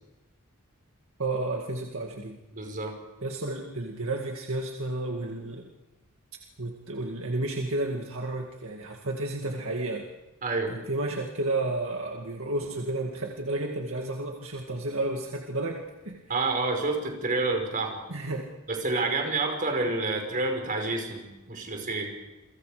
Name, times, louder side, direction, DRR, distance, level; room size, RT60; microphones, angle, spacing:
voice 1, 1.2-2.4 3.2-5.7 6.6-10.1 10.7-16.2 18.1-18.5, right 2 dB, 65° right, 1 dB, 2.2 m, -32 dB
voice 2, 2.5-2.9 10.4-10.7 16.3-18.0 18.7-22.1, right 3 dB, 40° right, 3 dB, 5.4 m, -28 dB
30.0 x 24.0 x 5.1 m, 1.1 s
head